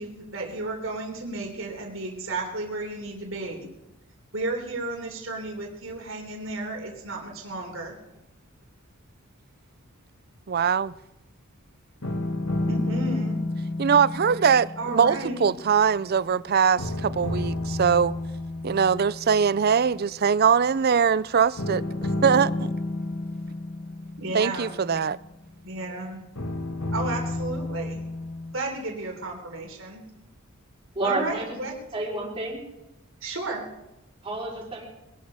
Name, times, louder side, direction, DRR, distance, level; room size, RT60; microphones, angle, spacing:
voice 1, 0.0-3.7 4.3-7.9 12.7-13.4 14.8-15.4 24.2-24.7 25.6-26.5 26.9-28.0 28.5-30.0 31.0-31.7 33.2-33.7, right 2 dB, 65° right, 3.7 m, -33 dB
voice 2, 10.5-10.9 13.8-18.1 18.6-21.8 22.2-22.5 24.3-25.2, right 6 dB, 45° right, 0.5 m, -22 dB
sound 1, 12.0-16.4 16.8-20.1 21.6-25.6 26.3-28.5, left 2 dB, 80° left, 1.9 m, -31 dB
voice 3, 30.9-31.6 31.9-32.6 34.2-34.8, right 2 dB, 25° right, 5.3 m, -29 dB
22.0 x 11.5 x 5.5 m
head